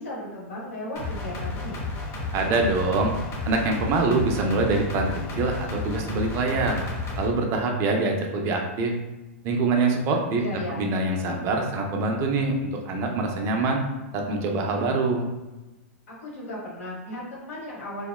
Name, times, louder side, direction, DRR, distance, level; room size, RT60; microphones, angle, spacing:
voice 1, 0.0-1.8 10.4-10.9 16.1-18.1, left 1 dB, 80° left, -5 dB, 1.1 m, -35 dB
sound 1, 1.0-7.3, left 3 dB, 35° left, 0.6 m, -32 dB
voice 2, 2.3-3.1 3.5-6.8 7.2-8.9 9.4-10.4 10.7-13.8 14.1-15.3, right 3 dB, 35° right, 2 dB, 0.4 m, -24 dB
2.7 x 2.0 x 2.2 m, 1.1 s
hypercardioid pair, 110°, 7 cm